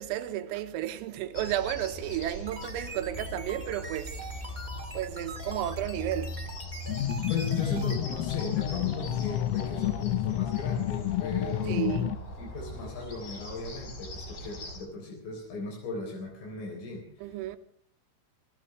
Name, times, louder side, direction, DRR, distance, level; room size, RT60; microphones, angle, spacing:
voice 1, 0.0-6.5 11.7-12.1 17.2-17.6, right 13 dB, 85° right, 3.7 m, -33 dB
sound 1, 1.3-14.8, left 1 dB, 45° left, 5.5 m, -41 dB
sound 2, 2.2-8.0, right 2 dB, 15° right, 1.4 m, -44 dB
sound 3, 6.9-12.2, left 12 dB, 85° left, 3.7 m, -29 dB
voice 2, 7.3-17.4, left 2 dB, 70° left, 6.2 m, -38 dB
26.5 x 16.0 x 3.3 m
omnidirectional pair, 6.0 m